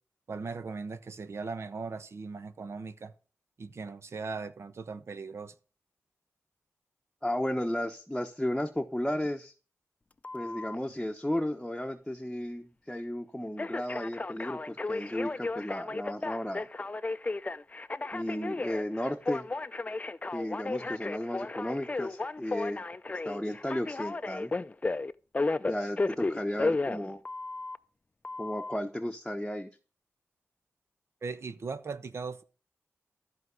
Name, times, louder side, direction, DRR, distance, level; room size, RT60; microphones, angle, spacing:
voice 1, 0.3-3.1 3.6-5.5 31.2-32.4, right 4 dB, 60° right, 1.1 m, -38 dB
voice 2, 7.2-9.5 10.3-16.7 18.1-19.5 20.3-22.8 23.2-24.5 25.7-27.2 28.4-29.7, left 1 dB, 5° left, 1.1 m, -34 dB
Telephone, 10.2-10.8 13.6-27.8 28.2-28.8, left 3 dB, 30° left, 0.6 m, -34 dB
13.5 x 4.8 x 8.3 m
wide cardioid pair, 80°, 5 cm